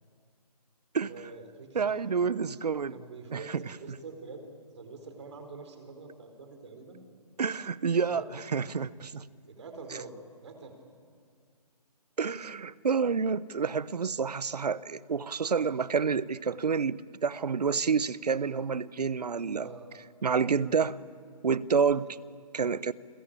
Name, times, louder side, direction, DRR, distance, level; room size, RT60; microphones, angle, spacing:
voice 1, 1.0-2.2 2.9-4.5 4.7-7.0 8.1-8.3 9.5-10.1 10.4-10.7 19.5-19.9 21.9-22.0, right 4 dB, 45° right, 6 dB, 4.5 m, -45 dB
voice 2, 1.7-3.0 3.3-3.6 7.4-8.2 8.5-9.3 12.2-19.7 20.2-21.0 21.4-22.2 22.5-22.9, right 5 dB, 75° right, 19 dB, 0.9 m, -28 dB
29.5 x 22.5 x 8.8 m, 2.2 s
hypercardioid pair, 165°, 20 cm